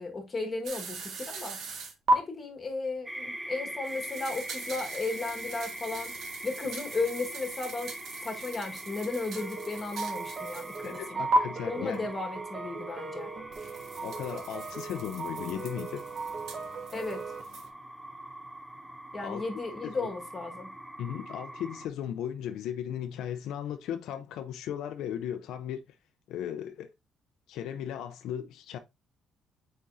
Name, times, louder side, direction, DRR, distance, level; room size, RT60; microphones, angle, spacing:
voice 1, 0.0-1.6 2.1-6.1 6.4-7.9 8.2-11.3 11.7-13.3 16.9-17.2 19.1-20.7, left 3 dB, 25° left, 1.5 m, -35 dB
sound 1, 0.6-2.1 3.8-11.1 11.3-11.4 13.5-17.7, right 2 dB, 55° right, 1.5 m, -36 dB
sound 2, 3.1-21.9, right 1 dB, 5° right, 0.5 m, -43 dB
sound 3, 9.4-17.4, right 4 dB, 30° right, 0.9 m, -39 dB
voice 2, 10.8-12.1 14.0-16.1 19.2-19.4 19.8-20.1 21.0-25.8 26.3-26.9 27.5-28.8, left 9 dB, 70° left, 0.5 m, -36 dB
8.5 x 4.4 x 2.6 m
cardioid pair, 155°, 0 cm